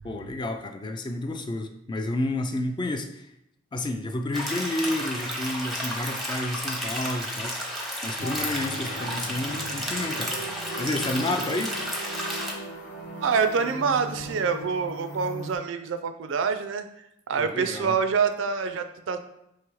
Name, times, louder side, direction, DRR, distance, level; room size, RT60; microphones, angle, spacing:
voice 1, 0.0-3.3 3.7-7.6 8.0-10.4 10.8-11.8 17.4-18.0, left 1 dB, 25° left, 6 dB, 0.3 m, -30 dB
sound 1, 4.3-12.5, equal, ahead, 0.7 m, -32 dB
sound 2, 8.2-15.6, right 1 dB, 60° left, 1.0 m, -38 dB
voice 2, 13.2-16.8 17.3-19.2, right 5 dB, 70° right, 9 dB, 0.4 m, -26 dB
4.8 x 3.0 x 3.0 m, 0.80 s
head